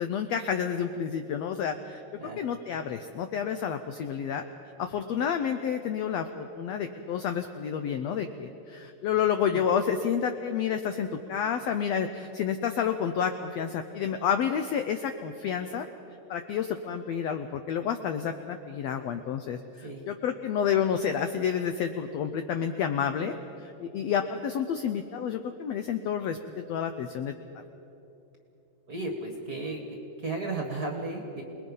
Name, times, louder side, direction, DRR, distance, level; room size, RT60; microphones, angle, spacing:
voice 1, 0.0-2.0 2.4-4.4 4.8-15.9 16.3-23.4 23.6-27.3, left 8 dB, 80° left, 7 dB, 1.5 m, -30 dB
voice 2, 28.9-29.8 30.2-31.4, right 2 dB, 40° right, 2 dB, 1.4 m, -34 dB
27.5 x 20.0 x 5.5 m, 2.9 s
omnidirectional pair, 3.8 m